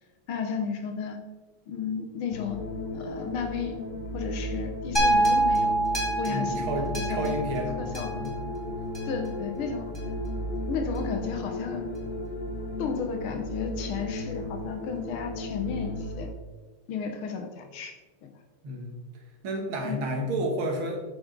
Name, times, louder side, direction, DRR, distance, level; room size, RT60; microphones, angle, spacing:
voice 1, 0.3-1.2 1.7-2.6 2.9-3.8 4.1-5.8 6.2-7.4 7.8-8.2 9.0-9.9 10.7-11.9 12.8-16.3 16.9-17.9 18.2-18.3 19.8-20.0, left 6 dB, 75° left, 5 dB, 1.8 m, -33 dB
sound 1, 2.3-16.3, left 1 dB, 60° left, 0.5 m, -34 dB
sound 2, 4.9-9.3 9.9-10.0, right 2 dB, 10° left, 2.1 m, -27 dB
voice 2, 6.3-7.8 8.2-8.4 18.6-19.0 19.4-21.0, right 1 dB, 75° right, 2 dB, 2.2 m, -31 dB
8.1 x 6.8 x 3.8 m, 1.2 s
omnidirectional pair, 2.4 m